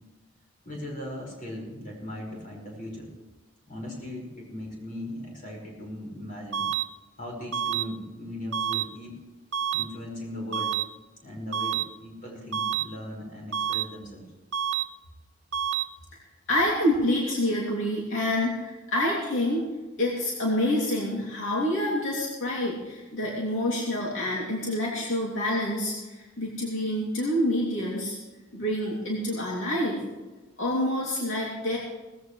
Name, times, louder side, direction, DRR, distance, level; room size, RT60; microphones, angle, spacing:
voice 1, 0.6-3.1 3.7-6.7 7.2-9.2 9.7-10.8 11.2-14.2, left 1 dB, 40° left, -1 dB, 5.5 m, -38 dB
sound 1, 6.5-6.8 7.5-7.8 8.5-8.8 9.5-9.8 10.5-10.8 11.5-11.8 12.5-12.8 13.5-13.8 14.5-14.8 15.5-15.8, right 10 dB, 65° right, 0.8 m, -27 dB
voice 2, 16.5-19.6 20.0-28.2 28.5-30.0 30.6-31.8, left 1 dB, 70° left, -4 dB, 2.9 m, -27 dB
19.0 x 14.5 x 3.3 m, 1.2 s
head